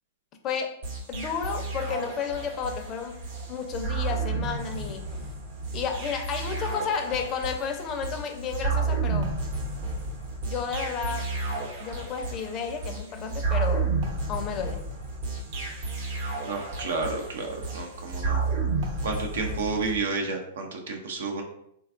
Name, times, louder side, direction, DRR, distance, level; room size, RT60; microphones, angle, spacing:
voice 1, 0.4-0.8 1.1-3.2 3.5-5.1 5.7-9.3 10.5-11.3 11.8-14.0 14.3-14.9, left 6 dB, 30° left, 5 dB, 0.4 m, -32 dB
sound 1, 0.8-20.0, right 3 dB, 60° right, 0.9 m, -31 dB
voice 2, 16.4-18.4 19.0-21.4, right 3 dB, 75° right, 3 dB, 0.5 m, -31 dB
3.4 x 2.2 x 2.4 m, 0.73 s
hypercardioid pair, 125°, 0 cm